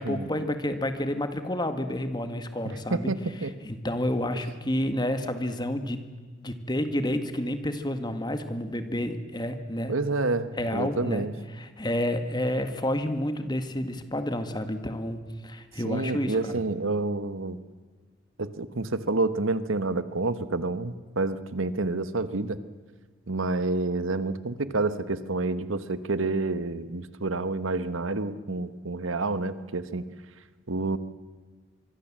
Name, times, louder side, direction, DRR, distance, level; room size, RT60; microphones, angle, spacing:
voice 1, 0.0-3.1 3.6-6.0 6.4-9.9 10.6-11.3 11.6-16.6, left 1 dB, 20° left, 8 dB, 1.9 m, -30 dB
voice 2, 2.9-3.5 9.9-11.3 15.8-17.6 18.4-22.6 23.3-30.0 30.7-31.0, right 3 dB, 85° right, 13 dB, 1.3 m, -28 dB
25.5 x 23.0 x 7.6 m, 1.5 s
head